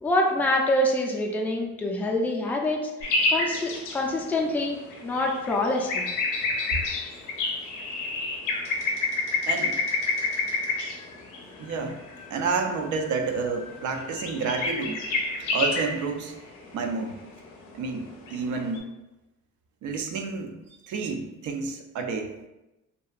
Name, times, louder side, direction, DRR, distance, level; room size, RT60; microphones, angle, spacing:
voice 1, 0.0-2.8 3.3-6.1, left 1 dB, 5° left, 0 dB, 0.3 m, -26 dB
sound 1, 3.0-18.8, left 3 dB, 90° left, 0.5 m, -29 dB
voice 2, 9.5-9.8 11.6-12.0 12.3-15.0 15.5-16.3 16.7-17.2 17.7-18.9 19.8-20.5 20.8-22.3, right 4 dB, 75° right, 4 dB, 0.5 m, -29 dB
2.8 x 2.2 x 2.4 m, 0.98 s
cardioid pair, 90°, 30 cm